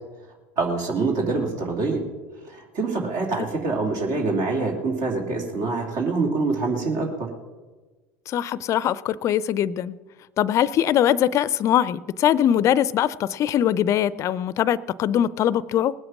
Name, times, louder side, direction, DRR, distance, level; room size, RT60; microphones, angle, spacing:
voice 1, 0.6-2.0 2.5-7.3, right 3 dB, 55° right, 1 dB, 2.6 m, -25 dB
voice 2, 8.3-10.0 10.4-15.9, left 10 dB, 45° left, 19 dB, 0.5 m, -22 dB
19.5 x 7.9 x 6.0 m, 1.3 s
hypercardioid pair, 80°, 7 cm